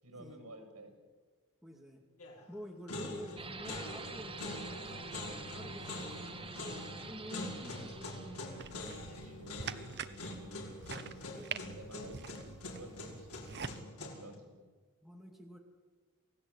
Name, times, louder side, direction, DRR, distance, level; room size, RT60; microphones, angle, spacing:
voice 1, 0.0-1.0 9.1-10.7 11.6-12.3 12.7-13.4 14.0-14.6, right 1 dB, 80° right, 5 dB, 7.3 m, -52 dB
voice 2, 1.6-2.0 2.5-8.1 11.1-11.7 15.0-15.6, equal, ahead, 1 dB, 2.6 m, -49 dB
sound 1, 2.2-2.5 2.9-14.3, left 1 dB, 80° left, 5.3 m, -44 dB
sound 2, 3.4-10.0, right 4 dB, 25° right, 2.1 m, -48 dB
sound 3, 8.6-13.8, right 6 dB, 50° right, 1.0 m, -45 dB
27.5 x 17.5 x 8.5 m, 1.4 s
head